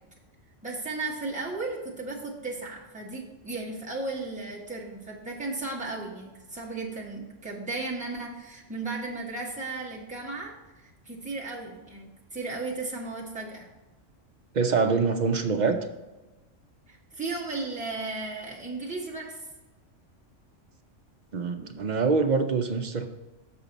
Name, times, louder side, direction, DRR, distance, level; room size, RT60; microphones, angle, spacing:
voice 1, 0.6-13.7 16.9-19.4, right 3 dB, 5° right, 1.4 m, -35 dB
voice 2, 14.5-15.9 21.3-23.1, right 4 dB, 55° right, 0.5 m, -25 dB
7.1 x 6.0 x 4.0 m
omnidirectional pair, 1.3 m